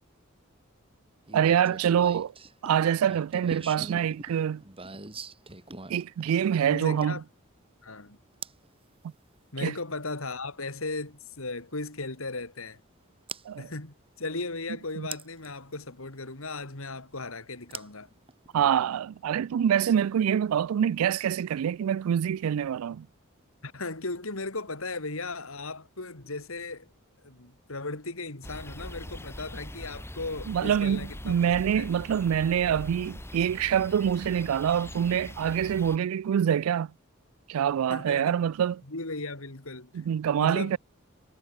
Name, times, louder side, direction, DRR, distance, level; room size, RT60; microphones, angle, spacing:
sound 1, 1.3-7.3 8.4-8.7 10.6-10.7 13.3-13.4 15.1-15.5 17.7-18.7, right 4 dB, 25° right, 4.3 m, -42 dB
voice 1, 1.3-2.3 2.6-4.6 5.9-7.2 9.6-9.7 13.5-13.7 15.0-15.1 18.5-23.1 30.5-36.9 37.5-38.8 39.9-40.8, right 9 dB, 80° right, 0.3 m, -25 dB
voice 2, 6.7-7.2 7.8-8.2 9.5-12.8 13.6-18.1 23.6-26.9 27.2-31.9 37.9-38.3 38.8-39.9 40.4-40.8, left 3 dB, 70° left, 2.9 m, -37 dB
sound 2, 28.4-36.0, left 1 dB, 10° left, 4.3 m, -42 dB
head